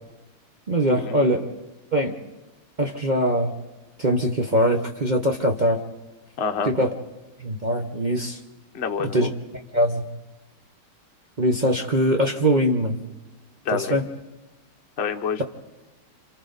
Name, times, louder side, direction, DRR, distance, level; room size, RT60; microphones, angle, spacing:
voice 1, 0.7-1.5 1.9-2.2 2.8-3.5 4.0-5.8 6.6-6.9 7.4-8.4 9.0-9.3 9.7-10.0 11.4-13.0 13.7-14.0, equal, 45° right, 4 dB, 0.5 m, -22 dB
voice 2, 6.4-6.7 8.7-9.3 13.6-14.0 15.0-15.4, left 6 dB, 45° left, 4 dB, 0.9 m, -27 dB
27.5 x 27.0 x 4.0 m, 1.1 s
omnidirectional pair, 2.3 m